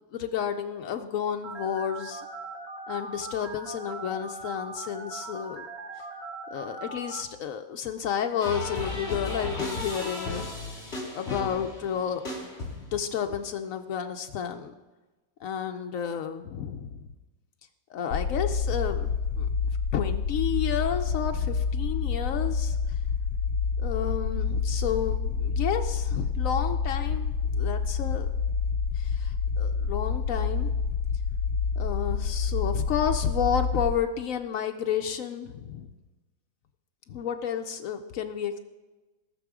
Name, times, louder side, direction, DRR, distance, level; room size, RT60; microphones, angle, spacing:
voice 1, 0.1-2.3 2.9-5.7 6.5-10.4 11.1-12.2 12.8-14.7 15.4-17.1 17.9-19.1 19.4-19.5 19.9-22.8 23.8-28.3 28.9-30.7 31.8-35.9 37.1-38.6, left 8 dB, 85° left, 5 dB, 0.7 m, -31 dB
Telephone, 1.4-7.2, right 3 dB, 50° right, 1.9 m, -40 dB
sound 1, 8.4-13.1, left 2 dB, 30° left, 2.8 m, -35 dB
sound 2, 18.1-33.9, left 5 dB, 65° left, 1.2 m, -28 dB
18.5 x 6.2 x 4.9 m, 1.2 s
omnidirectional pair, 2.2 m